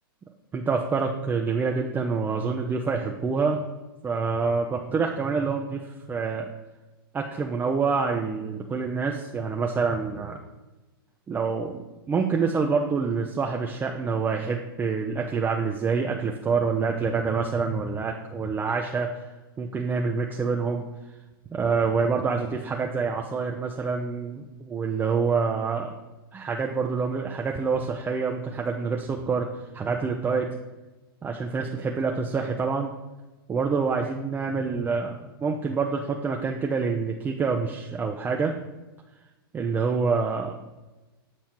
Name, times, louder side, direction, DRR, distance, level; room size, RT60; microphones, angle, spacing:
voice 1, 0.5-3.6 4.0-6.5 7.1-10.4 11.3-11.8 12.1-19.2 19.6-20.8 21.5-25.9 26.3-29.5 29.7-30.5 31.2-32.9 33.5-38.5 39.5-40.6, right 5 dB, 15° right, 1 dB, 0.5 m, -26 dB
7.7 x 4.4 x 4.3 m, 1.1 s
hypercardioid pair, 125°, 13 cm